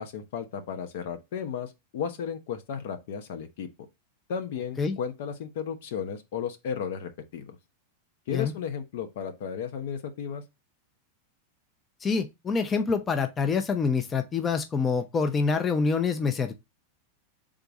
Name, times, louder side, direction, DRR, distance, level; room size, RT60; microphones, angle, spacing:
voice 1, 0.0-3.7 4.3-7.5 8.3-10.4, left 7 dB, 70° left, 0.9 m, -34 dB
voice 2, 12.0-16.5, left 5 dB, 20° left, 0.6 m, -26 dB
3.7 x 3.4 x 4.0 m
hypercardioid pair, 115°, 0 cm